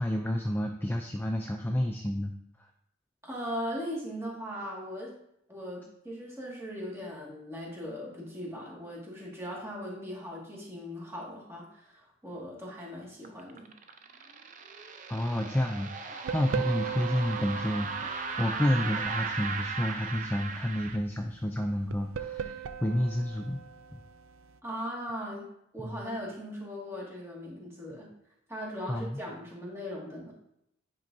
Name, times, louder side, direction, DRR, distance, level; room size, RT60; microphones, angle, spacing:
voice 1, 0.0-2.3 2.6-2.7 15.1-23.6 23.9-24.0 25.8-26.0 28.9-29.2, left 1 dB, 10° left, 4 dB, 0.3 m, -30 dB
voice 2, 3.2-5.1 5.5-13.7 24.6-25.5 25.7-28.1 28.5-30.3, equal, 15° right, -4 dB, 1.9 m, -39 dB
sound 1, 13.2-21.0, right 5 dB, 40° right, 0.6 m, -37 dB
sound 2, 16.2-24.6, right 8 dB, 80° right, 0.4 m, -40 dB
8.8 x 5.3 x 2.7 m, 0.79 s
head